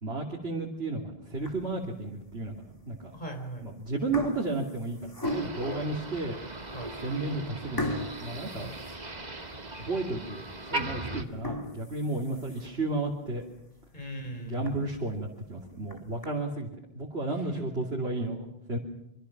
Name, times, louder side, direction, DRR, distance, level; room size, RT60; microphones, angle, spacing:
voice 1, 0.0-2.6 2.9-3.1 3.6-6.4 7.0-8.7 9.8-13.4 14.5-16.7 16.9-18.8, right 2 dB, 85° right, -1 dB, 3.2 m, -33 dB
sound 1, 1.3-1.8 2.4-2.5 3.4-3.6 3.9-5.8 6.4-6.5 6.8-7.0 7.8-9.5 9.9-10.0 10.5-10.6 11.2-12.9 13.3-13.4 13.8-13.9 14.2-14.3 14.6-14.7 15.7-16.3, left 1 dB, 20° left, 2.7 m, -37 dB
voice 2, 3.1-3.7 6.7-6.9 8.6-8.8 13.9-14.9 17.5-17.6, right 1 dB, 45° left, 4 dB, 4.3 m, -39 dB
Motor vehicle (road), 5.2-11.2, right 2 dB, 40° right, 2.0 m, -38 dB
26.0 x 25.0 x 6.0 m, 0.82 s
omnidirectional pair, 1.0 m